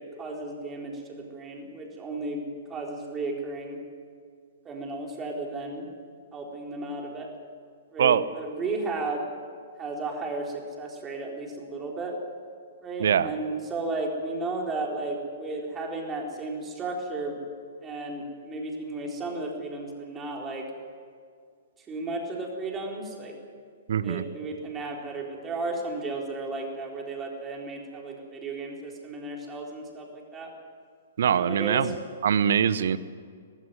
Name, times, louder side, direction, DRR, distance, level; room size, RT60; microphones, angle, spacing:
voice 1, 0.0-3.8 4.6-5.9 6.3-7.3 7.9-9.3 9.8-12.2 12.8-17.4 17.8-20.6 21.9-23.3 24.0-30.5 31.3-31.9, right 2 dB, 20° right, 0 dB, 4.1 m, -34 dB
voice 2, 23.9-24.2 31.2-31.9 32.2-33.0, right 8 dB, 55° right, 17 dB, 0.9 m, -23 dB
18.5 x 17.0 x 9.6 m, 2.1 s
figure-of-eight pair, 115°, 0 cm